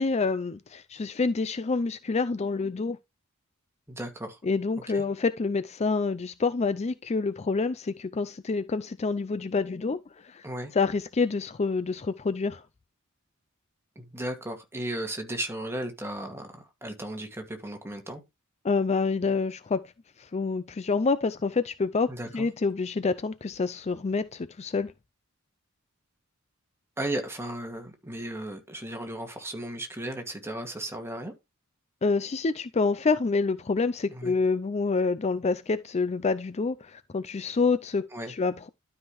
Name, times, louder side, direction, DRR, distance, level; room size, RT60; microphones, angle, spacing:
voice 1, 0.0-3.0 4.4-10.0 10.2-10.5 10.7-12.6 18.6-19.9 20.2-24.9 32.0-38.7, left 4 dB, 30° left, 0.4 m, -27 dB
voice 2, 3.9-4.4 4.9-5.0 10.4-10.7 14.0-18.2 22.1-22.5 27.0-31.3 34.1-34.3 38.1-38.3, right 1 dB, 10° right, 2.1 m, -35 dB
12.5 x 5.6 x 3.1 m
head